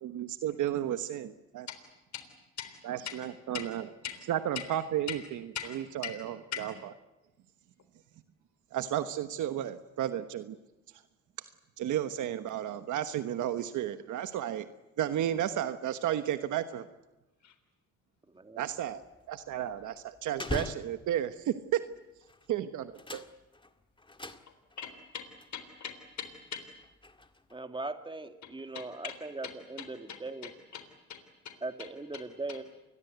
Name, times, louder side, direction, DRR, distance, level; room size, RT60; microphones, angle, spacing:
voice 1, 0.0-1.7 2.8-3.8 4.3-5.2 5.7-6.7 8.7-10.6 11.8-14.7 15.0-16.9 18.6-21.8 22.5-23.2, right 11 dB, 80° right, 10 dB, 1.3 m, -33 dB
voice 2, 5.5-6.2 6.5-6.7 17.4-17.6 24.8-26.7 28.4-28.5 28.7-29.2 29.4-31.9 32.1-32.2 32.5-32.6, left 8 dB, 65° left, 9 dB, 3.6 m, -42 dB
voice 3, 18.3-18.7 27.5-30.5 31.6-32.6, right 2 dB, 15° right, 7 dB, 2.4 m, -40 dB
sound 1, 18.7-21.4 22.2-22.5 22.8-24.9 25.4-25.5 26.1-27.6, left 2 dB, 15° left, 2.0 m, -43 dB
28.0 x 21.5 x 8.2 m, 1.0 s
cardioid pair, 90°, 30 cm